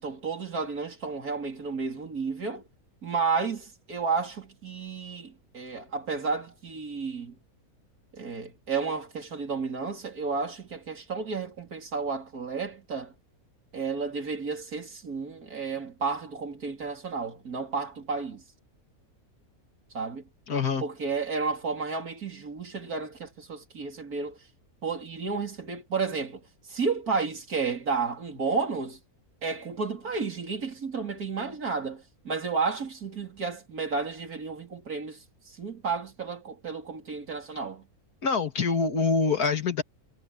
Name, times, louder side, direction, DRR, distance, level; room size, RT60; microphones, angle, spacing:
voice 1, 0.0-2.6 3.0-7.3 8.1-13.1 13.7-18.4 19.9-20.2 20.8-24.4 24.8-26.4 26.7-29.0 29.4-37.8, right 4 dB, 75° right, 3.9 m, -32 dB
voice 2, 20.5-20.8 38.2-39.8, left 4 dB, 80° left, 2.3 m, -25 dB
omnidirectional pair, 1.6 m